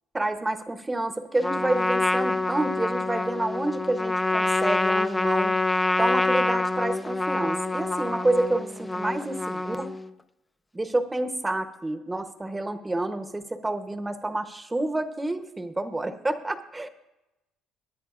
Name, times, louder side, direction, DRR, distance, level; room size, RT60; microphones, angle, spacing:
voice 1, 0.1-5.6 6.0-9.9 10.7-16.9, right 2 dB, 10° right, 10 dB, 0.8 m, -28 dB
Trumpet, 1.4-10.1, left 2 dB, 10° left, 0.4 m, -26 dB
22.0 x 10.5 x 2.5 m, 0.96 s
cardioid pair, 125°, 0 cm